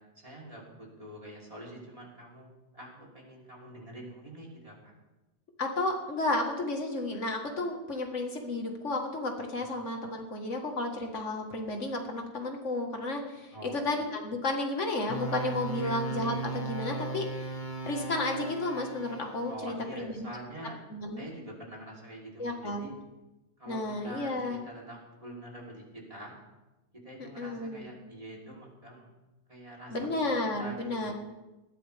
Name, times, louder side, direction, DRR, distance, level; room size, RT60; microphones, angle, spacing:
voice 1, 0.0-4.9 9.6-9.7 13.5-13.8 15.7-15.9 19.5-20.8 21.2-22.9 23.6-26.3 27.0-29.1 29.5-31.1, right 1 dB, 30° right, -3 dB, 3.9 m, -46 dB
voice 2, 5.6-17.5 17.9-20.3 20.9-21.2 22.4-22.9 23.7-24.6 27.4-27.9 29.9-31.1, left 2 dB, 90° left, 3 dB, 2.1 m, -32 dB
sound 1, 15.1-19.5, right 3 dB, 40° left, 1.5 m, -36 dB
19.5 x 14.0 x 3.6 m, 1.1 s
omnidirectional pair, 1.2 m